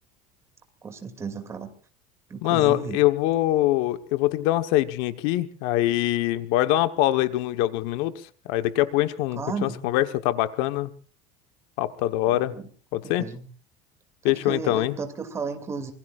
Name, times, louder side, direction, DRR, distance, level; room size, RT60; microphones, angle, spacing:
voice 1, 0.8-1.7 2.3-3.0 9.4-9.8 12.3-12.7 13.0-13.5 14.2-15.9, right 5 dB, 20° right, 7 dB, 2.6 m, -34 dB
voice 2, 2.4-8.1 8.4-10.9 11.8-12.5 12.9-13.3 14.2-15.0, left 15 dB, 70° left, 10 dB, 1.2 m, -23 dB
26.0 x 22.0 x 2.5 m, 0.40 s
cardioid pair, 170°, 16 cm